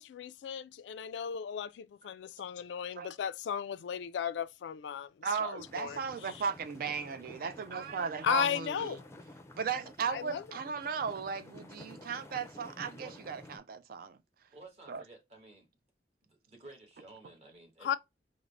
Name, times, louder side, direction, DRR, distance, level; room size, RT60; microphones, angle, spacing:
voice 1, 0.0-5.1 5.4-6.0 8.2-9.0 10.1-10.4 17.8-18.0, left 8 dB, 75° left, 0.3 m, -35 dB
voice 2, 5.2-9.0 9.6-14.2 14.9-15.0, right 6 dB, 55° right, 0.4 m, -36 dB
sound 1, 5.6-13.6, left 1 dB, 15° left, 0.5 m, -52 dB
voice 3, 14.5-15.7 16.2-18.0, right 2 dB, 35° right, 1.2 m, -53 dB
3.6 x 2.0 x 3.2 m
head